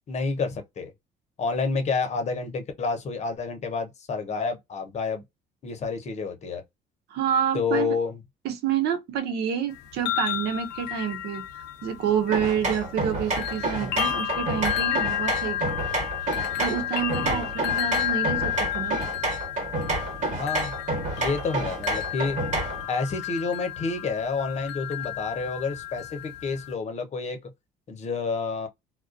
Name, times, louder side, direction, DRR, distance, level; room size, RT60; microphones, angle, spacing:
voice 1, 0.1-0.9 1.4-5.2 5.6-6.6 7.5-8.2 13.8-14.0 17.2-17.5 20.3-20.7 21.2-22.4 22.9-27.4 27.9-28.7, left 4 dB, 40° left, 0.8 m, -29 dB
voice 2, 7.1-8.0 8.4-15.7 16.6-19.0, right 8 dB, 75° right, 0.7 m, -28 dB
sound 1, 9.8-13.1 13.4-26.7, left 12 dB, 85° left, 0.5 m, -32 dB
sound 2, 12.3-22.9, right 2 dB, 45° right, 1.3 m, -29 dB
2.4 x 2.1 x 2.4 m
cardioid pair, 110°, 17 cm